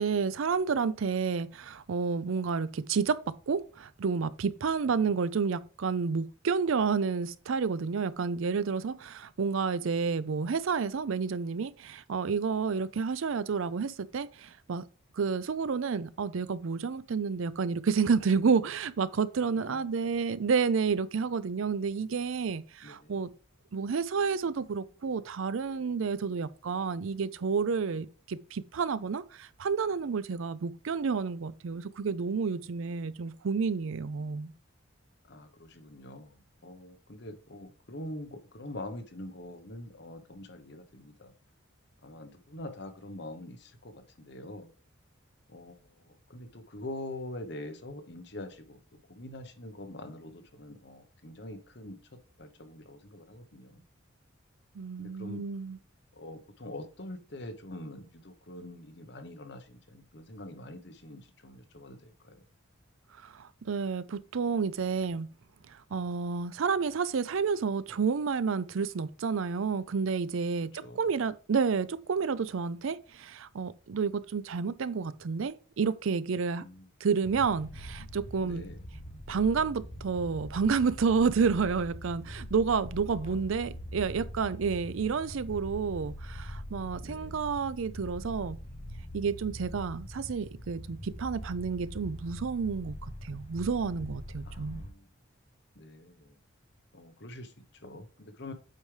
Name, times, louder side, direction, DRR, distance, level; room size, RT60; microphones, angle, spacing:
voice 1, 0.0-14.8 15.2-23.3 23.7-34.5 54.8-55.8 63.2-65.3 65.9-76.6 77.0-78.6 79.3-88.6 89.1-94.8, right 5 dB, 70° right, 0.5 m, -30 dB
voice 2, 19.5-19.9 22.8-23.2 35.3-41.3 42.0-44.7 45.5-48.8 49.1-53.8 55.0-55.4 56.1-62.4 70.8-71.0 76.6-76.9 78.4-78.8 83.1-83.4 87.0-87.4 94.4-95.1 95.8-96.4 96.9-98.5, left 1 dB, 50° left, 1.0 m, -44 dB
sound 1, 77.2-94.9, equal, 30° left, 0.7 m, -43 dB
8.2 x 4.9 x 3.3 m
head